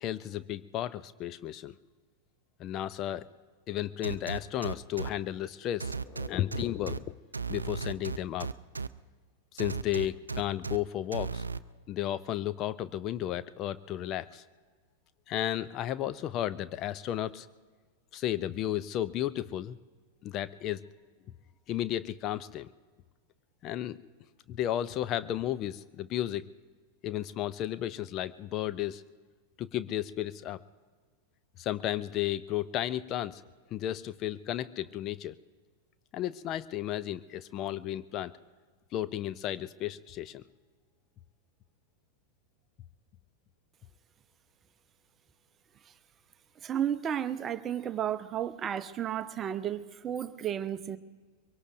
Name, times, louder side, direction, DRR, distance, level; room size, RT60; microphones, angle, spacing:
voice 1, 0.0-1.8 2.6-3.3 3.7-7.2 7.5-8.5 9.5-11.4 11.9-14.4 15.3-17.5 18.1-19.8 20.2-20.8 21.7-22.7 23.6-24.0 24.5-26.5 27.0-29.0 29.6-30.6 31.6-33.4 33.7-35.3 36.1-38.3 38.9-40.4, left 12 dB, 35° left, 15 dB, 0.4 m, -33 dB
sound 1, 4.0-5.1 5.8-7.0 7.3-8.9 9.6-10.8 11.1-11.6, right 4 dB, 80° right, 0.4 m, -35 dB
voice 2, 46.6-51.0, right 10 dB, 25° right, 13 dB, 0.6 m, -33 dB
23.5 x 23.5 x 2.6 m, 1.5 s
figure-of-eight pair, 90°, 0 cm